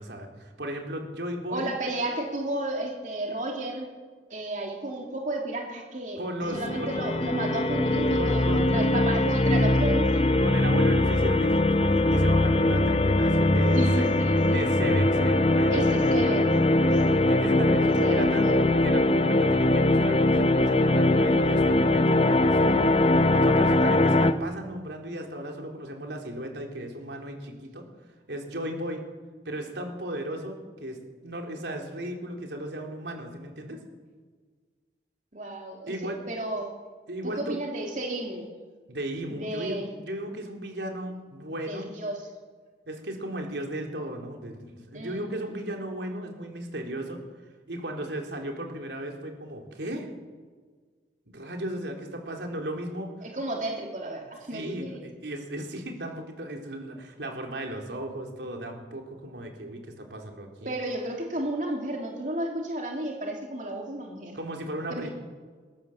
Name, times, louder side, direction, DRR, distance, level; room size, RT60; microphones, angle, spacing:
voice 1, 0.0-1.7 6.2-7.0 8.2-9.0 10.4-14.1 14.5-16.1 17.0-18.5 18.8-22.8 23.3-27.8 28.3-29.0 29.5-31.0 31.2-33.8 35.9-36.2 37.1-37.6 38.9-41.9 42.9-47.2 47.7-50.1 51.3-53.1 54.5-60.7 64.3-65.1, right 1 dB, 85° right, 2 dB, 3.7 m, -35 dB
voice 2, 1.5-3.9 4.3-6.2 6.5-10.2 13.7-14.6 15.7-16.4 17.0-17.4 17.6-18.7 35.3-36.7 37.2-38.5 39.3-39.9 41.7-42.2 44.9-45.4 53.2-55.0 60.6-64.4 64.9-65.1, right 1 dB, 45° right, 0 dB, 3.1 m, -33 dB
sound 1, 6.4-24.3, left 1 dB, 35° left, 0.8 m, -22 dB
21.0 x 18.5 x 7.3 m, 1.5 s
head